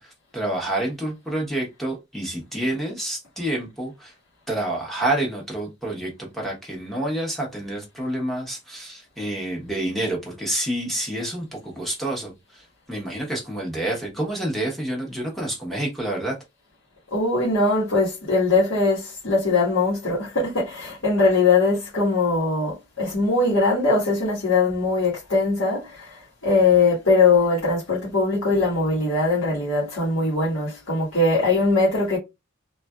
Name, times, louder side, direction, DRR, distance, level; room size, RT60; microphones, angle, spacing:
voice 1, 0.0-4.1 4.5-16.3, right 1 dB, ahead, 1.0 m, -28 dB
voice 2, 17.1-32.2, left 3 dB, 75° left, 1.4 m, -21 dB
3.2 x 2.5 x 2.3 m
head